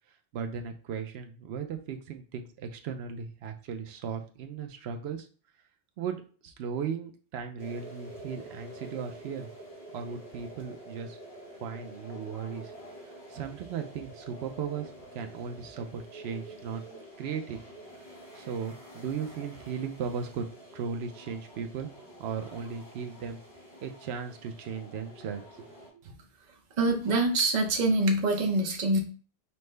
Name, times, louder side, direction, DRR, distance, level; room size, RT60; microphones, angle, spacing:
voice 1, 0.3-5.3 6.0-9.5 9.9-11.2 11.6-12.7 13.0-16.8 17.2-17.6 18.3-20.5 20.7-21.9 22.2-23.4 23.8-26.0, right 6 dB, 85° right, 6 dB, 0.8 m, -37 dB
sound 1, 7.6-25.9, right 1 dB, 70° left, 1.9 m, -48 dB
voice 2, 26.8-29.0, right 2 dB, 45° right, 2 dB, 0.8 m, -25 dB
5.6 x 2.1 x 3.2 m, 0.39 s
omnidirectional pair, 1.0 m